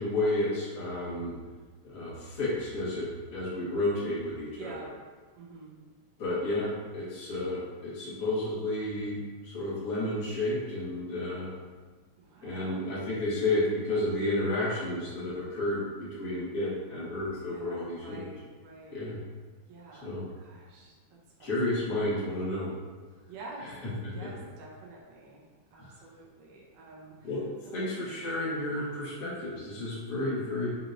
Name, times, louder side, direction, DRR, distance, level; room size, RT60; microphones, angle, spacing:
voice 1, 0.0-1.3 1.8-4.7 6.2-11.5 12.4-18.3 18.9-19.2 20.0-20.3 21.4-22.7 23.6-24.3 25.7-25.9 27.2-27.4 27.7-30.8, left 1 dB, 40° left, -9 dB, 1.4 m, -31 dB
voice 2, 4.6-4.9 5.4-5.8 12.2-12.8 17.5-19.0 19.7-21.5 23.3-23.7 24.1-27.4 27.7-27.8 28.7-28.9, right 3 dB, 85° right, -4 dB, 2.4 m, -48 dB
7.0 x 2.9 x 2.6 m, 1.4 s
omnidirectional pair, 3.6 m